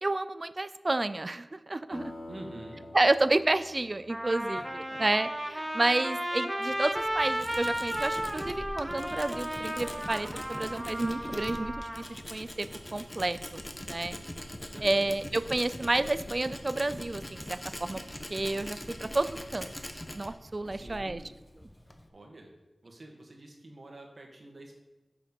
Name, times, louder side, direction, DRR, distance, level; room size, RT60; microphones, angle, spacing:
voice 1, 0.0-2.1 2.9-14.2 14.8-18.0 18.3-19.7 20.1-21.2, right 2 dB, 40° right, 14 dB, 0.4 m, -30 dB
sound 1, 1.9-6.2, left 1 dB, 80° left, 2.4 m, -48 dB
voice 2, 2.3-2.9 4.5-4.6 4.9-5.0 7.9-8.3 14.7-15.1 20.7-21.3 22.1-22.5 22.8-24.8, right 2 dB, 55° right, 2 dB, 1.7 m, -47 dB
Trumpet, 4.1-12.0, right 1 dB, 15° right, 0.8 m, -34 dB
Tools, 6.7-22.1, left 1 dB, 15° left, 0.9 m, -42 dB
7.2 x 5.8 x 5.4 m, 1.0 s
wide cardioid pair, 65°, 0 cm